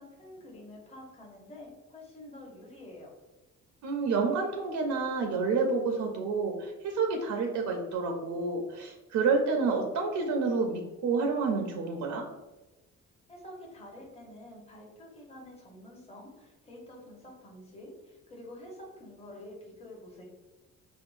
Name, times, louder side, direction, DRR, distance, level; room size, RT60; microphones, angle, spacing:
voice 1, 0.0-3.1 13.3-20.3, left 1 dB, 20° left, -2 dB, 0.8 m, -48 dB
voice 2, 3.8-12.3, right 4 dB, 70° right, 2 dB, 0.5 m, -29 dB
3.5 x 2.0 x 2.4 m, 1.1 s
cardioid pair, 90°, 30 cm